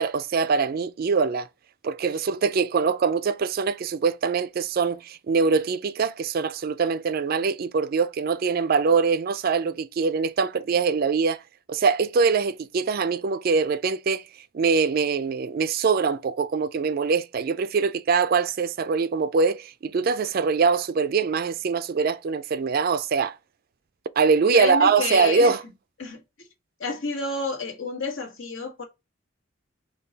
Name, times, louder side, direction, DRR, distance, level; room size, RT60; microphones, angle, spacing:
voice 1, 0.0-1.5 1.8-11.4 11.7-14.2 14.5-23.4 24.2-25.6, right 5 dB, 50° right, 0.3 m, -23 dB
voice 2, 24.5-25.5 26.0-26.2 26.8-28.8, left 3 dB, 75° left, 1.5 m, -30 dB
5.6 x 2.3 x 3.9 m
head